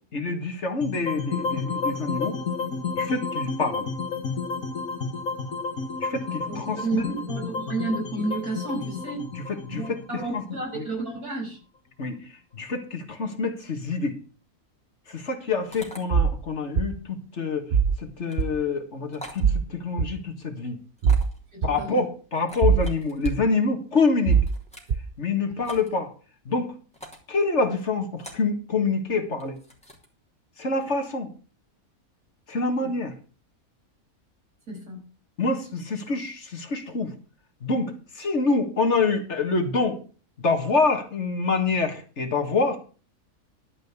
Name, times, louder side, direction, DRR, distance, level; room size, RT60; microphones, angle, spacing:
voice 1, 0.1-2.4 3.0-3.9 6.0-7.0 9.5-10.0 10.3-10.4 10.8-10.9 12.0-12.2 12.5-14.1 15.1-17.7 18.0-20.8 21.6-24.4 25.2-26.1 26.5-26.7 27.3-29.6 30.6-31.3 32.5-33.1 35.4-37.1 37.6-40.0 40.4-42.8, left 4 dB, 50° left, 4 dB, 2.0 m, -26 dB
sound 1, 0.8-11.0, left 4 dB, 70° left, 1.8 m, -31 dB
voice 2, 6.5-9.2 9.7-11.6 21.5-22.0 32.8-32.9 34.7-35.1, right 2 dB, 85° right, -2 dB, 6.4 m, -31 dB
sound 2, 15.7-16.0 18.2-18.4 19.1-19.4 21.0-21.4 22.4-23.3 24.3-24.9 25.6-25.9 26.9-27.3 28.2-28.5 29.4-30.1, equal, 5° left, 3.1 m, -43 dB
sound 3, 16.1-16.3 16.8-16.9 17.7-18.0 18.4-18.5 19.4-19.6 20.0-20.1 21.0-21.2 21.6-21.7 22.6-22.9 23.2-23.3 24.3-24.5 24.9-25.0, right 6 dB, 45° right, 0.7 m, -20 dB
12.5 x 5.3 x 8.1 m, 0.39 s
omnidirectional pair, 1.5 m